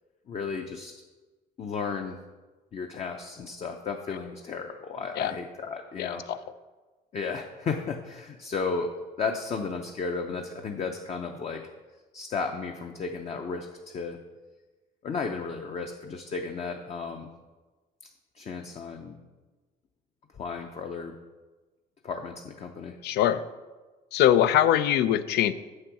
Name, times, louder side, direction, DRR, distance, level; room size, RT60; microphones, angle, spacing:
voice 1, 0.3-0.9 1.6-2.2 2.7-6.2 7.1-8.9 9.2-11.7 12.1-14.2 15.0-17.3 18.3-19.2 20.3-21.2 22.0-23.0, left 4 dB, 40° left, 4 dB, 0.7 m, -34 dB
voice 2, 6.0-6.4 23.0-23.4 24.1-25.5, left 11 dB, 75° left, 13 dB, 0.5 m, -22 dB
7.2 x 6.5 x 6.0 m, 1.3 s
cardioid pair, 110°, 17 cm